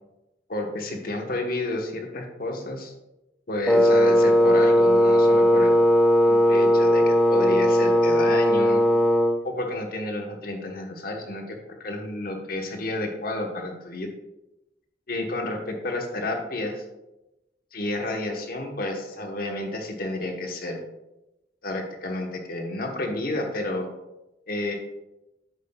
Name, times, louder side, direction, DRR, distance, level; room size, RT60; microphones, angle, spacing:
voice 1, 0.5-2.9 3.5-5.7 6.2-8.8 9.4-11.6 11.8-14.1 15.1-16.8 17.7-20.8 21.6-23.8 24.5-24.7, left 2 dB, 55° left, 3 dB, 1.1 m, -30 dB
Wind instrument woodwind instrument, 3.7-9.4, equal, ahead, 0.3 m, -18 dB
8.3 x 7.4 x 2.3 m, 0.97 s
head